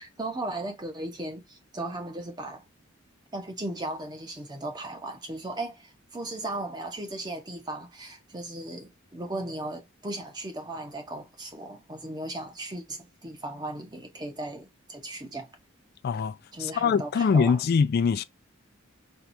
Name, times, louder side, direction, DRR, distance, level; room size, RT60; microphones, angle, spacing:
voice 1, 0.0-2.6 3.3-15.5 16.5-17.6, right 2 dB, 20° right, 0.7 m, -36 dB
voice 2, 16.0-16.3 16.6-18.2, left 6 dB, 45° left, 0.3 m, -23 dB
4.5 x 2.3 x 2.6 m
head